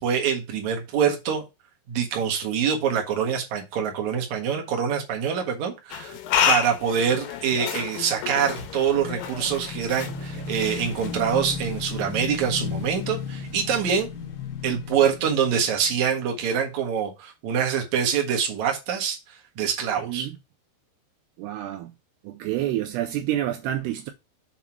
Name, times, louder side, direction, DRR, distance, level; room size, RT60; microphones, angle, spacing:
voice 1, 0.0-1.4 1.9-6.1 6.5-14.1 14.6-19.2 19.6-20.3, right 7 dB, 55° right, 2.3 m, -25 dB
sound 1, 5.9-11.6, left 8 dB, 80° left, 3.5 m, -30 dB
Motorcycle / Engine, 8.0-16.5, left 5 dB, 65° left, 1.9 m, -35 dB
voice 2, 20.0-20.4 21.4-21.9 22.2-24.1, right 13 dB, 85° right, 2.4 m, -28 dB
7.3 x 3.6 x 5.9 m
omnidirectional pair, 5.2 m